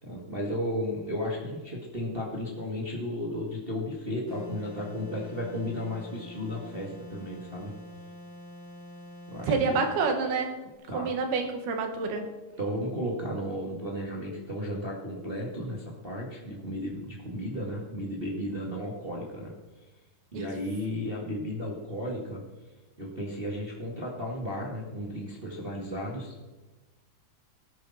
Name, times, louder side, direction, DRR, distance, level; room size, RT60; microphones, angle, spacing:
voice 1, 0.0-7.7 9.3-9.8 10.9-11.1 12.6-19.5 20.3-22.4 23.0-26.5, equal, 40° right, -2 dB, 0.7 m, -34 dB
sound 1, 4.3-10.1, left 1 dB, 15° left, 3.3 m, -46 dB
voice 2, 9.5-10.6 10.9-12.2 20.3-20.5, right 4 dB, 75° right, 5 dB, 3.5 m, -28 dB
18.0 x 10.5 x 4.2 m, 1.2 s
omnidirectional pair, 4.6 m